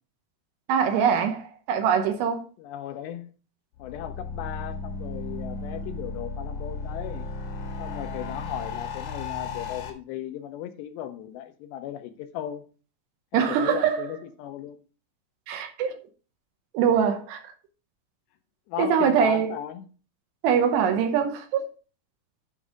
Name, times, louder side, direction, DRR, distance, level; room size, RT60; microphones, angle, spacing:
voice 1, 0.7-2.4 13.3-14.1 15.5-16.0 16.7-17.4 18.8-19.5 20.4-21.6, right 7 dB, 75° right, 2.8 m, -23 dB
voice 2, 2.6-3.3 3.8-7.3 7.8-12.6 13.3-14.8 18.7-19.9, left 11 dB, 80° left, 2.7 m, -36 dB
sound 1, 3.8-9.9, left 4 dB, 55° left, 2.8 m, -35 dB
8.9 x 5.3 x 3.6 m
omnidirectional pair, 5.2 m